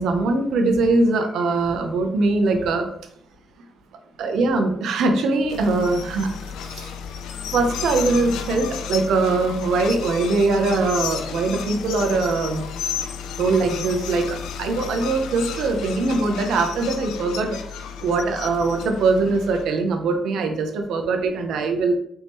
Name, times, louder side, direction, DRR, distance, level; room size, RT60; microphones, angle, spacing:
voice 1, 0.0-2.9 4.2-6.4 6.6-6.9 7.5-12.6 13.4-17.6 18.0-21.9, right 3 dB, 80° right, 4 dB, 0.7 m, -22 dB
sound 1, 5.5-19.7, left 7 dB, 85° left, 0.4 m, -33 dB
4.3 x 3.0 x 3.5 m, 0.69 s
supercardioid pair, 65°, 0 cm